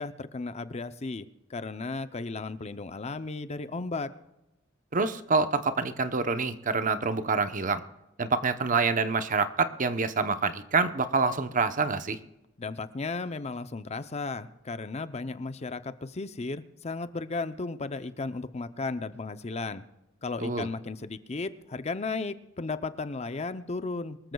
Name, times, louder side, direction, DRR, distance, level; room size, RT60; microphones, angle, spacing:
voice 1, 0.0-4.1 12.6-19.8 20.2-24.3, left 3 dB, 35° left, 12 dB, 0.6 m, -35 dB
voice 2, 4.9-7.8 8.2-12.2 20.4-20.7, right 4 dB, 40° right, 10 dB, 0.9 m, -26 dB
24.5 x 14.0 x 2.3 m, 0.96 s
head